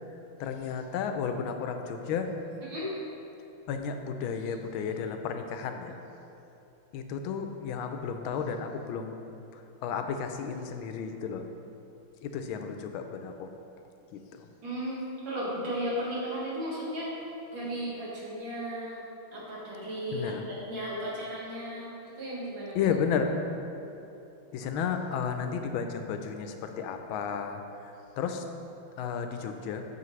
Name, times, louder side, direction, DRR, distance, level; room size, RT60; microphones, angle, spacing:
voice 1, 0.4-2.3 3.7-6.0 6.9-9.2 9.8-11.5 12.2-13.5 14.1-14.5 20.1-20.4 22.7-23.3 24.5-27.6 28.2-28.4 29.0-29.8, left 6 dB, 85° left, 6 dB, 1.4 m, -33 dB
voice 2, 14.6-19.0 19.3-22.8, equal, 70° right, -6 dB, 2.5 m, -35 dB
8.3 x 6.9 x 3.2 m, 2.9 s
omnidirectional pair, 2.3 m